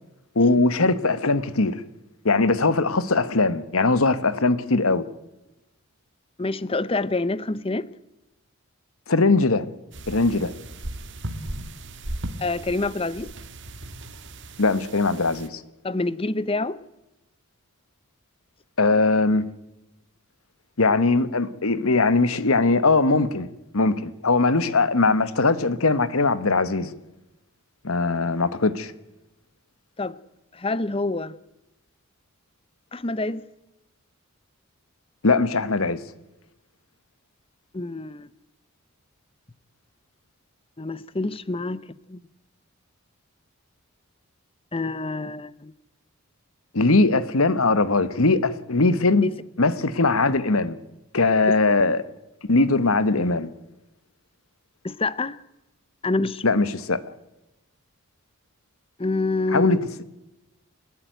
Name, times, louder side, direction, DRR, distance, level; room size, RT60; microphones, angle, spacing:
voice 1, 0.3-1.8 2.2-5.0 9.1-9.6 10.1-10.5 14.6-15.6 18.8-19.5 20.8-23.5 23.7-26.9 27.8-28.9 35.2-36.0 46.7-49.3 49.6-50.8 51.1-52.0 52.5-53.5 56.4-57.0 59.5-60.0, left 3 dB, 75° left, 1.3 m, -20 dB
voice 2, 6.4-7.9 12.4-13.3 15.8-16.8 30.0-30.2 30.5-31.3 32.9-33.4 37.7-38.3 40.8-41.8 42.1-42.2 44.7-45.7 49.2-49.3 54.8-55.4 56.0-56.4 59.0-59.8, left 2 dB, 25° left, 0.7 m, -27 dB
sound 1, 9.9-15.5, right 1 dB, 55° right, 1.8 m, -37 dB
29.0 x 11.0 x 9.1 m
head